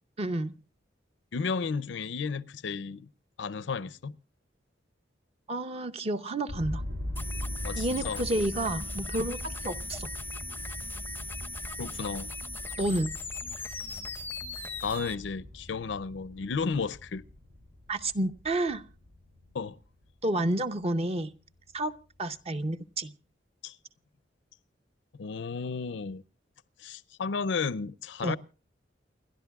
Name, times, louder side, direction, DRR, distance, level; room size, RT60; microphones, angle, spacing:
voice 1, 0.2-0.6 5.5-6.8 7.8-10.1 12.8-13.1 17.9-18.8 20.2-21.3 21.7-21.9 22.2-23.1 28.2-28.4, right 1 dB, 35° right, 0.7 m, -30 dB
voice 2, 1.3-3.1 3.4-4.2 7.6-8.3 11.8-12.3 14.8-17.2 19.5-19.8 23.6-23.8 25.2-26.2 26.8-28.4, left 5 dB, 85° left, 0.5 m, -33 dB
sound 1, 6.5-20.1, left 1 dB, 90° right, 3.2 m, -41 dB
sound 2, 7.1-15.1, left 2 dB, 10° left, 0.5 m, -39 dB
29.0 x 12.0 x 2.3 m
head